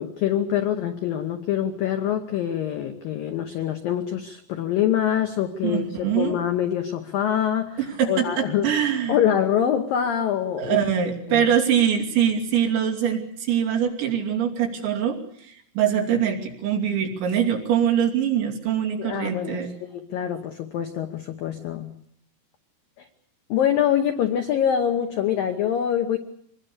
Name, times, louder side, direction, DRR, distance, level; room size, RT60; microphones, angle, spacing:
voice 1, 0.0-7.8 8.1-8.7 9.1-10.8 11.3-11.5 19.0-19.7 19.9-21.9 23.5-26.2, left 10 dB, 80° left, 6 dB, 2.1 m, -25 dB
voice 2, 5.6-6.4 7.8-9.2 10.6-19.7, right 8 dB, 65° right, 0 dB, 5.0 m, -23 dB
25.5 x 20.5 x 6.8 m, 0.72 s
omnidirectional pair, 5.7 m